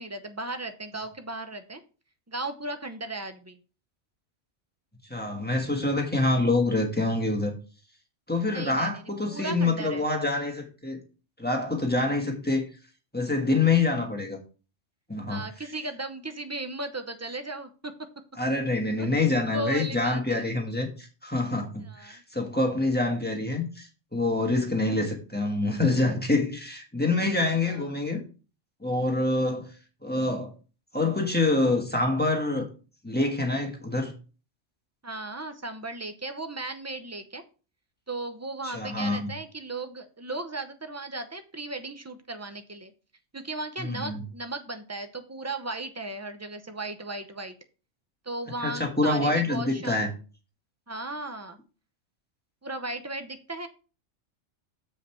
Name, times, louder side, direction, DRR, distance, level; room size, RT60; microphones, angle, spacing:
voice 1, 0.0-1.8 2.3-3.6 8.5-10.1 13.9-14.1 15.3-17.9 19.0-20.5 21.8-22.2 27.5-27.9 35.0-37.4 38.1-42.9 43.3-47.5 48.2-50.1 50.9-51.6 52.6-53.7, right 2 dB, 20° right, 8 dB, 0.5 m, -36 dB
voice 2, 5.1-7.5 8.3-11.0 11.4-12.7 13.1-14.4 15.1-15.4 18.4-28.2 28.8-29.7 30.0-30.5 30.9-32.7 33.0-34.1 38.6-39.3 43.8-44.2 48.6-50.1, left 2 dB, 10° left, 1 dB, 1.4 m, -26 dB
7.5 x 5.2 x 4.4 m, 0.35 s
omnidirectional pair, 1.3 m